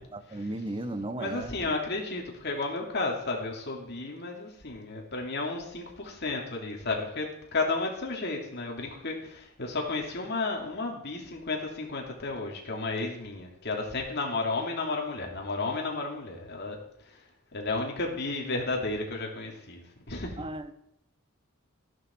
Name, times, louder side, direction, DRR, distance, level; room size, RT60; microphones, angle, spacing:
voice 1, 0.0-1.8 20.4-20.7, right 1 dB, 25° right, 1.0 m, -36 dB
voice 2, 1.2-16.8 17.1-17.2 17.5-20.4, left 3 dB, 50° left, 2.7 m, -32 dB
13.0 x 11.0 x 4.5 m
head